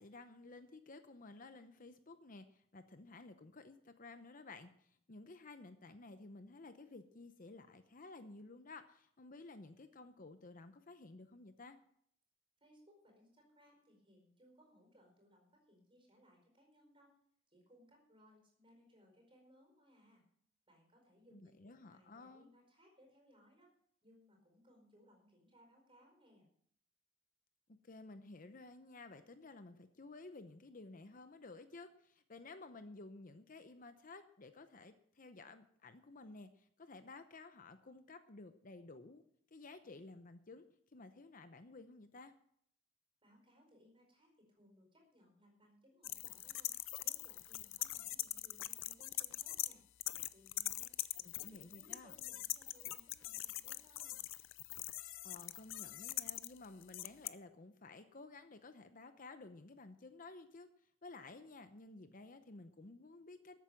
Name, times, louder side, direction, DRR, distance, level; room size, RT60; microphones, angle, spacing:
voice 1, 0.0-11.8 21.3-22.5 27.8-39.2 39.5-40.6 40.9-42.3 51.2-52.1 55.2-60.7 61.0-63.6, left 3 dB, 40° left, 10 dB, 0.8 m, -54 dB
voice 2, 12.6-17.2 17.5-20.2 20.7-23.7 24.0-26.5 43.2-46.7 47.0-49.8 50.3-50.9 51.2-54.2, equal, 25° right, 1 dB, 4.9 m, -66 dB
sound 1, 46.0-49.7 50.0-57.3, left 16 dB, 75° left, 0.5 m, -42 dB
13.5 x 8.4 x 7.6 m, 0.67 s
head